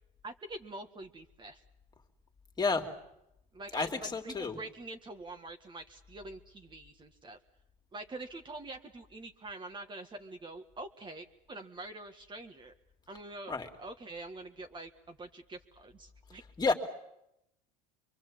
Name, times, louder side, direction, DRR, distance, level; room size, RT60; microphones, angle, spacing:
voice 1, 0.2-1.6 3.5-7.4 7.9-12.7 13.1-16.4, right 2 dB, 25° right, 5 dB, 1.8 m, -45 dB
voice 2, 2.6-2.9 3.7-4.6 13.5-13.7 16.6-16.7, left 4 dB, 20° left, 4 dB, 2.7 m, -30 dB
24.5 x 23.0 x 7.5 m, 0.83 s
hypercardioid pair, 90°, 19 cm